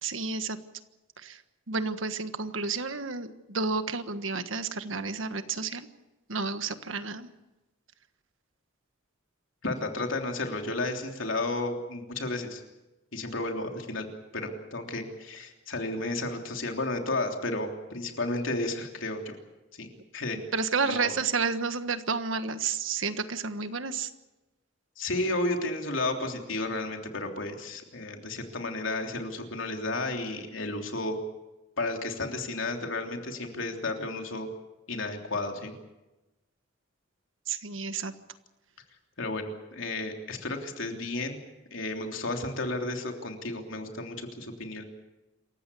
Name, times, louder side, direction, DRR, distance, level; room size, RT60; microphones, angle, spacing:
voice 1, 0.0-0.6 1.2-1.4 1.7-5.9 6.3-7.3 20.5-24.1 37.5-38.1, right 4 dB, 75° right, 10 dB, 1.5 m, -31 dB
voice 2, 9.6-12.6 13.1-14.1 14.3-19.4 19.8-19.9 20.1-20.4 20.8-21.1 25.0-31.2 31.8-34.5 34.9-35.7 39.2-41.4 41.7-44.8, left 2 dB, 75° left, 3 dB, 3.3 m, -32 dB
27.5 x 15.5 x 8.4 m, 1.0 s
head